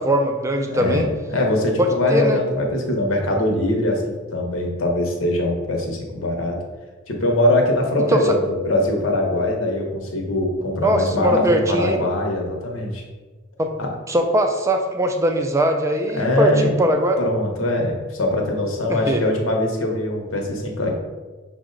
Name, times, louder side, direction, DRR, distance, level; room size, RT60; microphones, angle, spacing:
voice 1, 0.0-1.1 1.8-2.4 8.1-8.3 10.8-12.0 13.6-13.7 14.1-17.2 18.9-19.4, equal, 15° right, 4 dB, 0.4 m, -20 dB
voice 2, 0.7-6.6 7.1-13.0 13.8-13.9 16.1-16.8 17.2-21.0, left 1 dB, 75° left, 0 dB, 0.8 m, -22 dB
5.8 x 2.1 x 3.8 m, 1.3 s
head